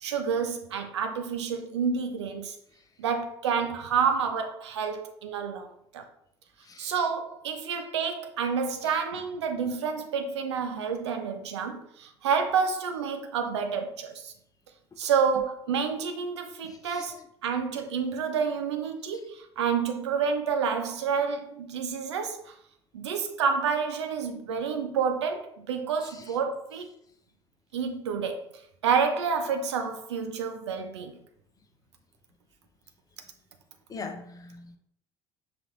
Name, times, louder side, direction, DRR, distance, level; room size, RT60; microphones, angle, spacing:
voice 1, 0.0-2.6 3.0-6.1 6.8-14.3 15.0-22.5 22.9-26.9 27.7-28.4 28.8-31.2, right 6 dB, 70° right, 0.5 m, -29 dB
voice 2, 33.9-34.8, left 4 dB, 25° left, 0.6 m, -41 dB
5.7 x 2.5 x 3.0 m
figure-of-eight pair, 60°, 15 cm